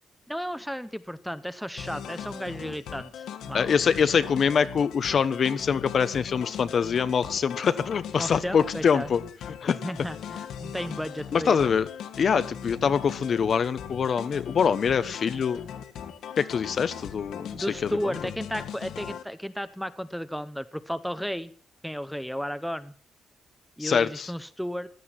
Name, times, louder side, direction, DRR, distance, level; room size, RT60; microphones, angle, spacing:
voice 1, 0.3-3.7 8.2-9.1 9.8-11.7 12.8-12.9 17.5-21.5 21.8-22.9 23.8-24.9, equal, ahead, 12 dB, 0.7 m, -34 dB
sound 1, 1.8-19.2, left 9 dB, 80° left, 1.9 m, -39 dB
voice 2, 3.5-9.2 9.6-9.8 11.3-11.9 12.2-15.6 16.4-18.1 23.8-24.3, left 6 dB, 40° left, 14 dB, 1.0 m, -24 dB
16.0 x 13.0 x 5.8 m, 0.42 s
cardioid pair, 165°, 0 cm